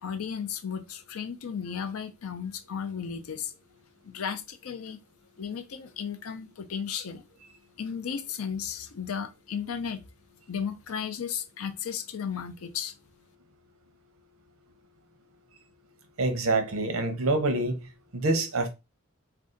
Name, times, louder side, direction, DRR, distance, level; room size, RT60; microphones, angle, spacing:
voice 1, 0.0-3.5 4.0-5.0 5.4-7.2 7.8-10.0 10.5-12.9, left 7 dB, 85° left, 0.5 m, -34 dB
voice 2, 16.2-17.8 18.1-18.7, right 2 dB, 80° right, 0.7 m, -26 dB
2.6 x 2.3 x 3.7 m
head